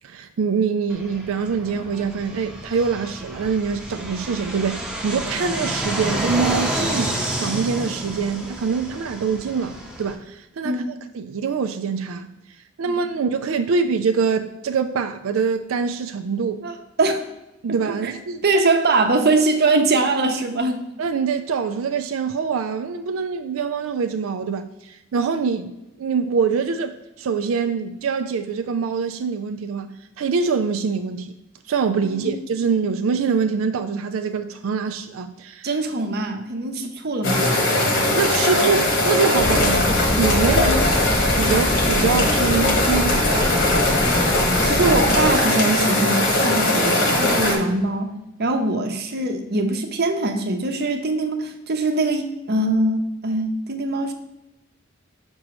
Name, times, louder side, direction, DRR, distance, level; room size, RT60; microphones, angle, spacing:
voice 1, 0.0-10.8 11.1-12.3 12.8-16.7 17.6-18.4 21.0-31.4 31.7-35.7 38.1-40.7 41.4-43.5, right 5 dB, 85° right, 7 dB, 0.4 m, -24 dB
Fixed-wing aircraft airplane, 0.9-10.2, right 1 dB, 5° right, 0.8 m, -29 dB
voice 2, 16.6-17.2 18.0-18.1 18.4-20.9 32.0-32.4 35.6-37.5 40.5-40.8 44.6-48.1 48.4-54.1, right 2 dB, 50° right, 5 dB, 0.8 m, -22 dB
sound 1, 37.2-47.6, left 1 dB, 65° left, 1.4 m, -20 dB
sound 2, 39.4-45.3, left 1 dB, 25° left, 0.5 m, -24 dB
6.0 x 5.3 x 3.0 m, 0.96 s
head